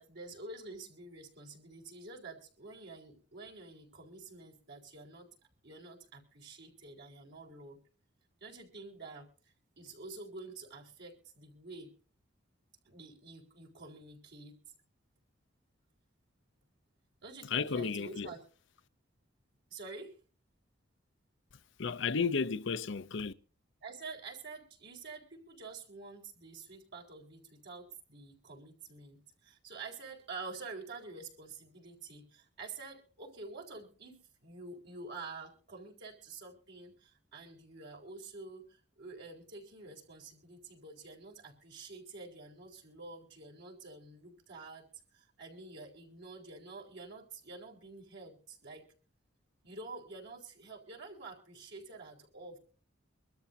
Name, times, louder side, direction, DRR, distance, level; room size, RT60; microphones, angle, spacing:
voice 1, 0.0-5.3 5.6-7.8 8.4-11.9 12.8-14.6 17.2-18.4 19.7-20.2 23.8-44.9 45.1-48.9 49.6-52.6, right 3 dB, 60° right, 4.3 m, -48 dB
voice 2, 17.5-18.3 21.8-23.3, left 5 dB, 65° left, 0.6 m, -33 dB
25.0 x 13.0 x 2.7 m
head